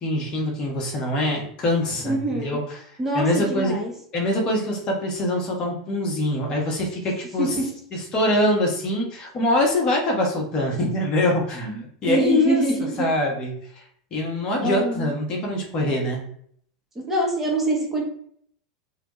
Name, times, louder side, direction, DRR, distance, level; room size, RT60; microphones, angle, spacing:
voice 1, 0.0-2.8 3.1-3.7 4.1-7.6 7.9-12.6 13.0-13.8 14.1-16.2, left 1 dB, 35° left, 0 dB, 0.7 m, -24 dB
voice 2, 2.0-2.6 3.0-3.9 7.4-7.7 12.1-13.1 14.6-15.1 16.9-18.1, right 2 dB, 10° right, -2 dB, 0.8 m, -24 dB
2.2 x 2.1 x 2.8 m, 0.63 s
hypercardioid pair, 90°, 3 cm